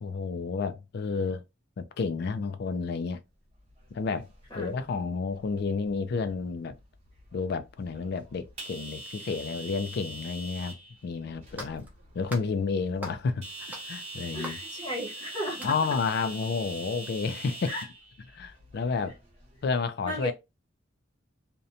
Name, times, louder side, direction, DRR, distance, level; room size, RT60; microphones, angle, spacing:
voice 1, 0.0-1.4 1.8-3.2 3.9-4.3 4.5-6.8 7.3-11.9 12.1-14.6 15.6-17.7 18.3-19.2 19.6-20.3, left 4 dB, 55° left, 0.3 m, -31 dB
sound 1, 3.6-19.7, right 1 dB, 35° right, 0.9 m, -44 dB
sound 2, 11.0-11.1 11.6-11.9 12.3-12.5 13.0-13.3 13.7-15.2 15.6-15.9, equal, 10° right, 0.5 m, -43 dB
voice 2, 14.3-15.7 17.7-17.8 20.0-20.3, equal, 20° left, 0.8 m, -34 dB
2.8 x 2.1 x 2.5 m
head